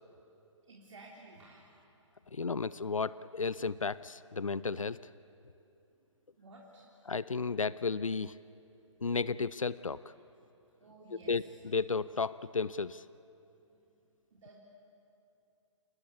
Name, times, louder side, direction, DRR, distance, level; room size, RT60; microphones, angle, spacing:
voice 1, 0.6-1.7 2.2-2.3 4.4-4.5 6.4-7.3 10.1-10.2 10.8-11.6 13.7-13.8 14.3-14.6, right 2 dB, 65° right, -3 dB, 3.6 m, -55 dB
voice 2, 2.3-5.0 7.1-8.4 9.0-10.0 11.3-13.0, left 4 dB, 90° left, 18 dB, 0.5 m, -33 dB
28.5 x 19.0 x 8.4 m, 2.8 s
figure-of-eight pair, 130°, 16 cm